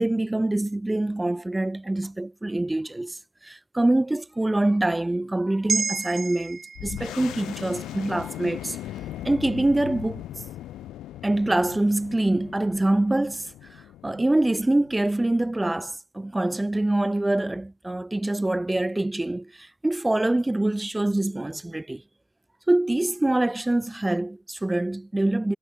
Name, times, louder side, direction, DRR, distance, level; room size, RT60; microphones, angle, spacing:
voice 1, 0.0-8.8 9.2-10.2 11.2-22.0 22.7-25.6, right 2 dB, 10° right, 1.5 m, -25 dB
sound 1, 5.7-10.2 10.6-10.7, right 5 dB, 35° right, 0.5 m, -34 dB
sound 2, 6.8-16.0, left 14 dB, 85° left, 1.1 m, -39 dB
cardioid pair, 110°, 0 cm